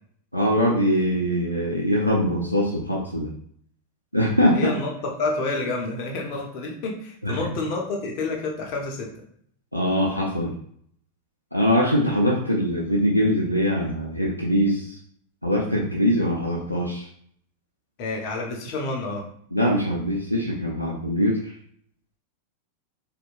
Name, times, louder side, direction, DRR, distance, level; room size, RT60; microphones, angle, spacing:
voice 1, 0.3-3.3 4.1-4.7 7.2-7.4 9.7-10.5 11.5-14.9 15.4-17.0 19.5-21.4, equal, 90° left, -3 dB, 0.4 m, -22 dB
voice 2, 4.5-4.9 5.2-9.1 18.0-19.2, left 3 dB, 45° left, 0 dB, 0.6 m, -29 dB
2.7 x 2.1 x 2.4 m, 0.63 s
figure-of-eight pair, 90°, 0 cm